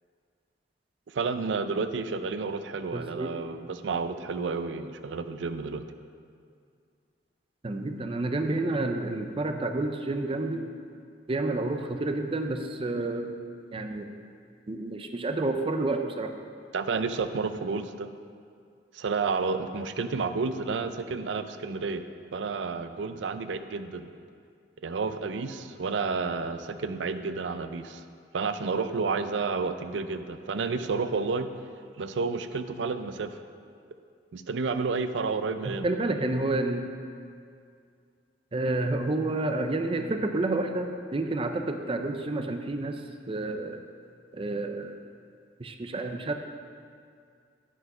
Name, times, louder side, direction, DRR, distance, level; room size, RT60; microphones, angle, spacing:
voice 1, 1.1-5.8 16.7-18.1 18.9-22.0 22.3-24.1 24.8-28.0 28.3-31.5 32.0-33.4 34.3-35.9, right 4 dB, 85° right, 10 dB, 0.5 m, -30 dB
voice 2, 2.9-3.3 7.6-10.7 11.3-13.4 13.7-14.1 14.7-16.3 35.6-36.8 38.5-43.0 43.3-43.8 44.3-45.0 45.6-46.3, right 2 dB, 30° right, 6 dB, 0.5 m, -29 dB
9.8 x 5.0 x 5.4 m, 2.3 s
head